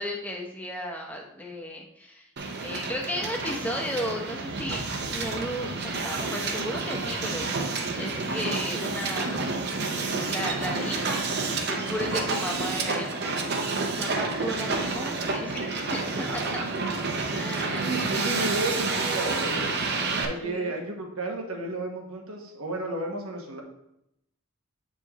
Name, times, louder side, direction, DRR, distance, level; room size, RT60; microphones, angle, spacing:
voice 1, 0.0-2.3 2.6-9.4 10.3-13.7 14.0-16.6 17.3-18.2 20.1-20.7, equal, 5° left, 1 dB, 0.8 m, -35 dB
Hiss, 2.4-20.2, right 3 dB, 50° right, 0.7 m, -29 dB
voice 2, 11.8-12.1 14.5-14.8 16.3-16.8 17.3-17.4 17.8-19.7 20.2-23.6, right 2 dB, 80° right, 1 dB, 1.2 m, -33 dB
8.3 x 4.6 x 3.0 m, 0.81 s
head